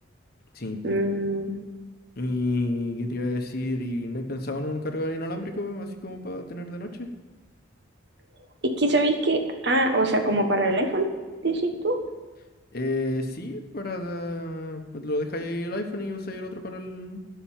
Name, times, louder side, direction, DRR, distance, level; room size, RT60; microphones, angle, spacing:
voice 1, 0.8-1.5 8.8-11.1 11.4-11.9, right 2 dB, 55° right, 5 dB, 1.4 m, -23 dB
voice 2, 2.2-7.1 12.7-17.2, left 1 dB, 50° left, 5 dB, 1.2 m, -30 dB
12.0 x 5.9 x 9.0 m, 1.3 s
head